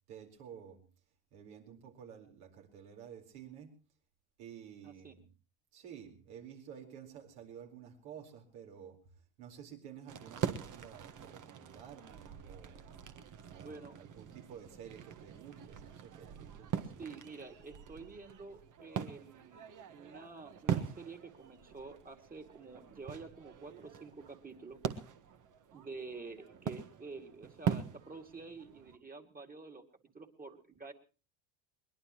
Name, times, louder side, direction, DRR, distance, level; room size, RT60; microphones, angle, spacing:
voice 1, 0.1-0.8 1.3-3.8 4.4-5.3 5.7-9.0 9.4-12.9 13.5-17.0, right 8 dB, 70° right, 3 dB, 4.4 m, -52 dB
voice 2, 4.8-5.2 13.6-14.0 17.0-19.6 19.9-24.8 25.7-29.8 30.1-30.9, right 4 dB, 20° right, 5 dB, 2.4 m, -49 dB
sound 1, 10.1-29.0, right 8 dB, 40° right, 1.5 m, -42 dB
22.0 x 21.0 x 3.0 m, 0.34 s
hypercardioid pair, 90°, 46 cm